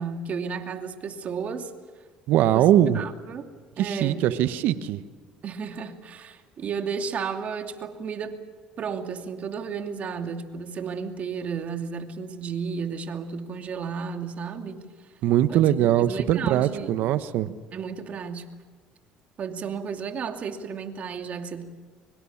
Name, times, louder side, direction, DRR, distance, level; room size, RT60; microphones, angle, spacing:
voice 1, 0.0-1.7 2.4-3.5 3.8-4.4 5.4-8.4 8.8-14.8 15.5-16.9 17.7-18.5 19.4-21.6, right 6 dB, 50° right, 5 dB, 2.6 m, -33 dB
voice 2, 2.3-3.0 3.8-5.0 15.2-17.5, right 12 dB, 70° right, 12 dB, 1.3 m, -21 dB
24.5 x 24.0 x 7.4 m, 1.4 s
supercardioid pair, 85°, 3 cm